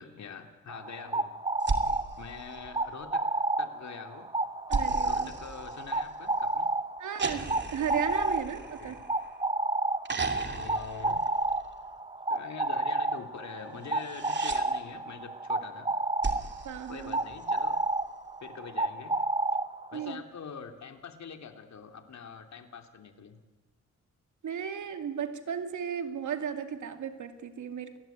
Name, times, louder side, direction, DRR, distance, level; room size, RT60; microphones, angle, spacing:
voice 1, 0.0-1.3 2.2-3.2 3.6-4.3 5.0-6.7 8.2-9.0 10.5-11.2 12.3-15.9 16.2-16.5 16.9-17.8 18.4-19.2 19.9-23.4, left 6 dB, 70° left, 6 dB, 3.0 m, -44 dB
sound 1, 0.7-20.1, right 2 dB, 20° right, 1.3 m, -31 dB
sound 2, 1.6-3.2 4.7-6.4 7.2-9.5 10.0-11.9 13.8-14.6 16.2-17.7 19.2-19.3, right 4 dB, 40° right, 2.8 m, -36 dB
voice 2, 4.7-5.3 7.0-9.0 16.6-17.2 19.9-20.2 24.4-28.0, right 8 dB, 85° right, 8 dB, 2.4 m, -35 dB
29.0 x 21.0 x 9.3 m, 1.2 s
cardioid pair, 105°, 29 cm